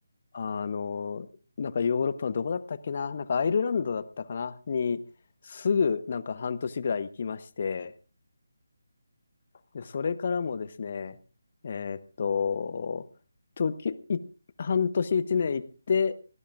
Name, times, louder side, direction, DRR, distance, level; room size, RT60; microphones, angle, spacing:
voice 1, 0.3-1.3 1.6-5.0 5.4-7.9 9.7-11.2 11.6-13.0 13.6-14.2 14.6-16.2, left 6 dB, 40° left, 16 dB, 0.9 m, -29 dB
24.0 x 18.0 x 2.5 m, 0.34 s
figure-of-eight pair, 150°, 0 cm